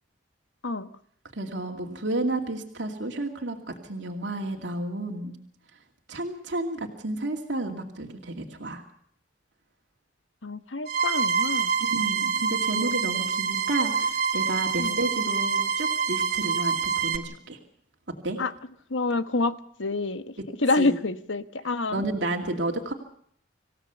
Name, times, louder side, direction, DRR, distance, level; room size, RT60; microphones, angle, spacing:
voice 1, 1.4-3.6 3.8-5.4 6.1-8.8 11.8-17.6 18.2-18.4 20.8-21.0 21.9-22.9, right 2 dB, 70° right, 2 dB, 2.5 m, -31 dB
voice 2, 10.4-11.7 14.8-15.0 18.4-18.5 18.9-20.2 20.6-22.0, left 3 dB, 90° left, 11 dB, 1.2 m, -27 dB
sound 1, 10.9-17.2, right 6 dB, 55° right, 1.7 m, -26 dB
27.0 x 16.0 x 7.0 m, 0.64 s
head